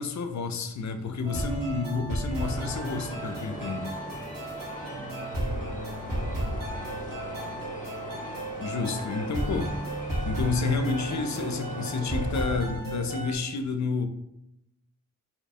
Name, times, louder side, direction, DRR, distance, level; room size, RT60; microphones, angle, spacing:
voice 1, 0.0-3.9 8.6-9.7 10.2-14.1, left 4 dB, 55° left, 7 dB, 0.4 m, -30 dB
sound 1, 1.2-13.4, right 1 dB, 75° right, 1.2 m, -34 dB
sound 2, 2.4-12.6, left 1 dB, 25° left, 0.7 m, -41 dB
voice 2, 4.5-7.9, right 3 dB, 50° right, 2 dB, 0.7 m, -50 dB
2.8 x 2.2 x 4.1 m, 0.82 s
wide cardioid pair, 75°, 33 cm